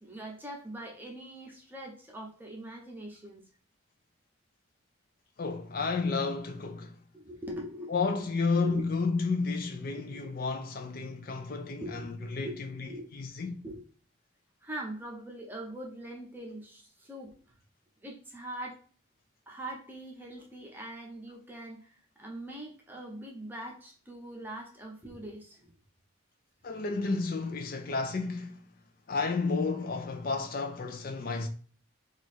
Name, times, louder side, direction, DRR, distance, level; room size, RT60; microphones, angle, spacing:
voice 1, 0.0-3.4 7.1-8.2 8.5-8.8 10.1-10.3 11.8-12.0 12.4-12.6 12.9-13.1 13.6-13.8 14.6-17.6 18.0-18.8 19.5-25.7, right 1 dB, 10° right, 0.7 m, -42 dB
voice 2, 5.4-7.0 7.9-13.6 26.6-28.6 29.1-31.5, left 4 dB, 45° left, 0.4 m, -31 dB
3.0 x 2.4 x 4.2 m
head